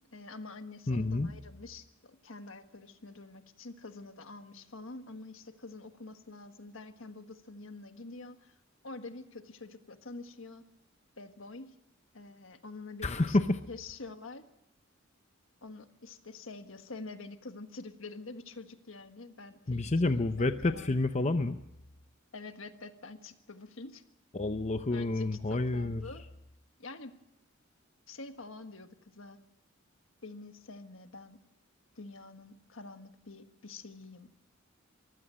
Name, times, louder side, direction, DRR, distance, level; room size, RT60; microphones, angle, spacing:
voice 1, 0.1-8.5 8.8-10.6 11.2-11.7 12.1-13.4 13.7-14.5 15.6-21.0 22.3-24.0 24.9-26.3 26.8-27.1 28.1-29.4 30.2-31.4 31.9-34.3, left 3 dB, 70° left, 8 dB, 1.5 m, -47 dB
voice 2, 0.9-1.3 13.0-13.6 19.7-21.6 24.3-26.0, left 2 dB, 35° left, 9 dB, 0.7 m, -29 dB
24.0 x 15.5 x 7.6 m, 0.87 s
head